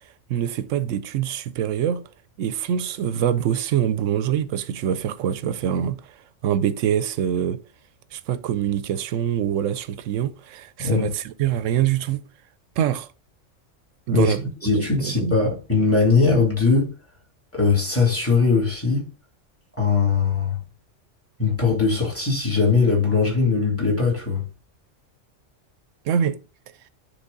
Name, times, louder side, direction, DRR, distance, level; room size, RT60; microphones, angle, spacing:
voice 1, 0.3-2.0 2.4-6.2 6.4-7.6 8.1-12.2 12.8-13.1 14.1-14.5 14.7-15.4 26.1-26.4, right 9 dB, 90° right, 1.0 m, -24 dB
voice 2, 10.8-11.1 14.1-14.3 14.6-16.9 17.5-19.1 19.8-20.6 21.4-24.4, left 4 dB, 10° left, 2.7 m, -20 dB
9.6 x 3.7 x 3.9 m
omnidirectional pair, 1.3 m